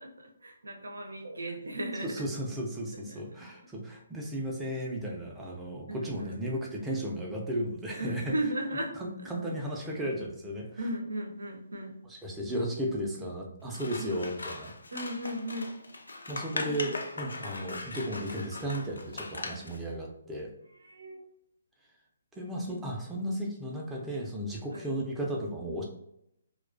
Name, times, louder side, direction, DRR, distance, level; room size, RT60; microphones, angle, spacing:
voice 1, 0.0-2.3 2.9-3.5 5.9-6.4 8.0-9.0 10.8-12.0 14.0-14.1 14.9-15.8 16.6-16.9 20.8-21.2 22.7-22.8 24.7-24.8, right 1 dB, 85° right, 3 dB, 0.5 m, -36 dB
voice 2, 2.0-8.3 9.0-10.8 12.1-14.7 16.3-20.5 22.4-25.8, equal, 10° right, -2 dB, 0.5 m, -34 dB
Scissors, 13.7-19.8, left 2 dB, 85° left, 0.4 m, -40 dB
2.3 x 2.2 x 2.4 m, 0.76 s
figure-of-eight pair, 145°, 0 cm